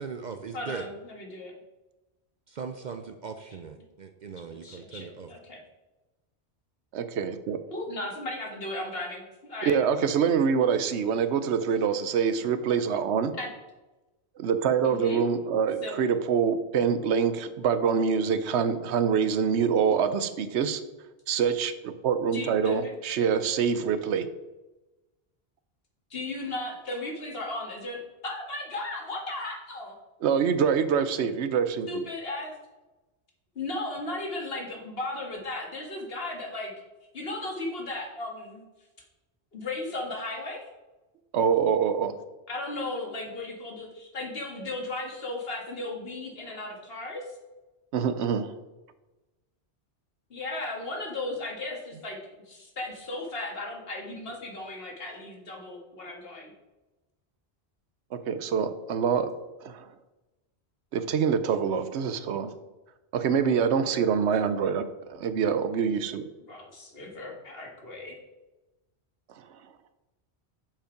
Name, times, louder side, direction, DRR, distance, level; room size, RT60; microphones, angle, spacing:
voice 1, 0.0-0.8 2.5-5.3, right 5 dB, 55° right, 7 dB, 0.6 m, -39 dB
voice 2, 0.5-1.5 4.6-5.6 7.7-9.8 13.4-13.5 14.8-15.2 15.8-16.0 22.3-22.9 26.1-28.0 28.2-29.9 31.9-32.5 33.6-36.7 37.1-38.6 39.5-40.6 42.5-47.2 50.3-52.2 52.5-56.5 66.5-68.2, left 2 dB, 60° left, 0 dB, 1.9 m, -36 dB
voice 3, 6.9-7.6 9.6-13.3 14.4-20.8 21.3-24.3 30.2-32.0 41.3-42.2 47.9-48.5 58.1-59.3 59.6-59.9 60.9-62.5 63.1-66.2, right 7 dB, 85° right, 11 dB, 1.0 m, -25 dB
7.3 x 5.3 x 5.0 m, 1.1 s
omnidirectional pair, 1.1 m